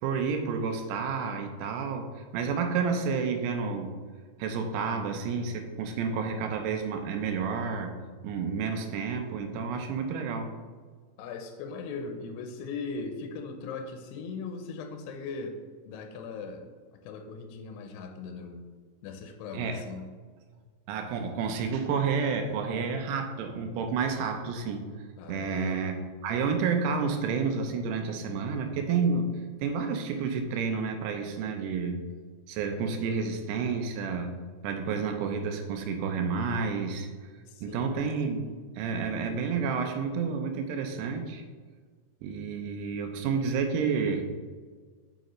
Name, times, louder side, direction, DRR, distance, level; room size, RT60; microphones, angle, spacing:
voice 1, 0.0-3.9 4.4-7.9 8.2-10.5 19.5-19.8 20.9-24.9 25.3-29.3 29.6-32.0 32.5-34.3 34.6-37.1 37.6-38.4 38.8-41.4 42.2-44.2, right 5 dB, 80° right, 5 dB, 2.7 m, -30 dB
voice 2, 11.2-15.6 15.9-16.7 17.0-18.6 19.0-20.1 25.2-25.9 37.5-38.0, left 4 dB, 80° left, 5 dB, 2.5 m, -39 dB
6.8 x 6.5 x 3.1 m, 1.6 s
omnidirectional pair, 5.1 m